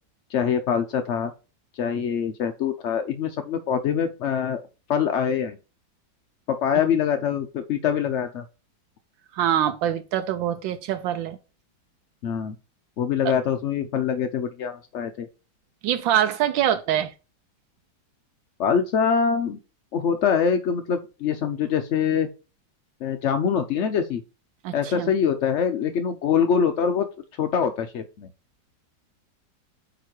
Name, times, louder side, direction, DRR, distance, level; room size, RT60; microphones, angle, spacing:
voice 1, 0.3-1.3 1.7-4.6 4.9-5.6 6.5-8.4 12.2-12.5 13.0-15.3 18.6-19.6 19.9-22.3 23.0-24.2 24.7-27.1 27.4-28.3, left 7 dB, 75° left, 0.6 m, -24 dB
voice 2, 9.3-11.4 15.8-17.1 24.6-25.1, right 10 dB, 90° right, 1.4 m, -24 dB
8.9 x 3.2 x 4.3 m
omnidirectional pair, 2.0 m